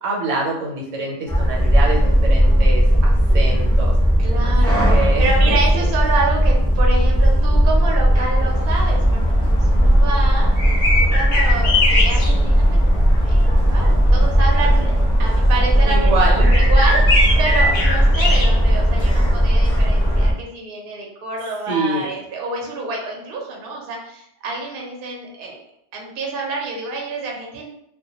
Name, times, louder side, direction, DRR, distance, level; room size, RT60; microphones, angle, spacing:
voice 1, 0.0-3.9 4.4-5.9 15.8-16.5 21.6-22.1, right 2 dB, 80° right, -2 dB, 1.0 m, -25 dB
sound 1, 1.3-20.3, equal, 5° left, 0.4 m, -16 dB
voice 2, 4.2-4.9 5.2-10.5 11.0-12.8 13.2-14.9 15.2-25.6 25.9-27.7, right 3 dB, 55° right, -1 dB, 0.7 m, -27 dB
sound 2, 8.4-20.3, left 2 dB, 55° left, 0.6 m, -25 dB
2.2 x 2.1 x 2.8 m, 0.75 s
omnidirectional pair, 1.3 m